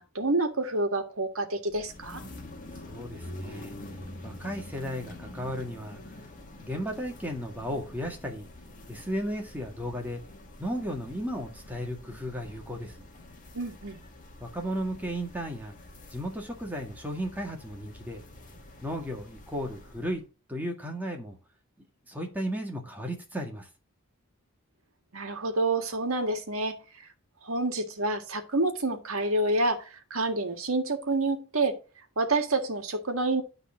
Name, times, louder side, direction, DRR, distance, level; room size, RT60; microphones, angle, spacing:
voice 1, 0.0-2.2 13.5-14.0 25.1-26.8 27.4-29.9 30.1-31.8 32.2-33.4, right 2 dB, 75° right, 1.8 m, -28 dB
sound 1, 1.7-20.2, left 1 dB, 40° left, 1.8 m, -46 dB
voice 2, 2.8-3.8 4.2-6.0 6.6-8.5 8.9-10.2 10.6-13.1 14.4-15.7 16.1-18.2 18.8-20.2 20.5-21.4 22.1-23.7, equal, 10° right, 1.8 m, -34 dB
11.5 x 4.0 x 4.9 m
head